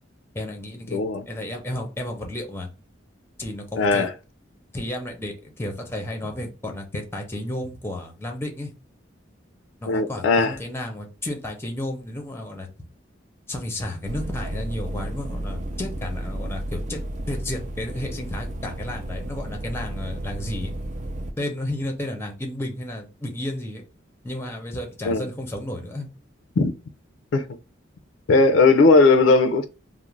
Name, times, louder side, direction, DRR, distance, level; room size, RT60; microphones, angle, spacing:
voice 1, 0.3-1.0 1.3-2.7 3.4-4.1 4.7-8.7 9.8-12.7 13.5-17.0 17.3-20.7 21.4-23.8 24.2-26.1, left 1 dB, 10° left, 0.6 m, -32 dB
voice 2, 0.9-1.2 3.8-4.1 9.9-10.6 25.1-25.2 26.6-26.7 27.3-27.5 28.3-29.7, left 3 dB, 80° left, 0.4 m, -17 dB
sound 1, 14.0-21.3, right 1 dB, 40° right, 0.4 m, -32 dB
2.4 x 2.0 x 3.1 m
head